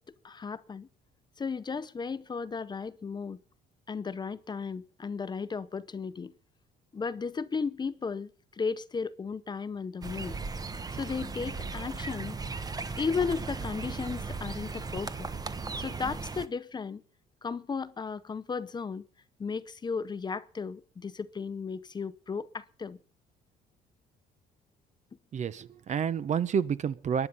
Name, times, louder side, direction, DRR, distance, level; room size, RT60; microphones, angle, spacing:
voice 1, 0.2-0.9 1.4-3.4 3.9-6.3 6.9-10.3 10.9-12.4 13.0-15.3 15.8-17.0 17.4-19.0 19.4-23.0, left 5 dB, 25° left, 0.8 m, -35 dB
sound 1, 10.0-16.5, right 4 dB, 20° right, 1.2 m, -37 dB
voice 2, 25.3-27.3, right 7 dB, 45° right, 0.9 m, -29 dB
22.0 x 10.0 x 5.5 m
cardioid pair, 110°, 17 cm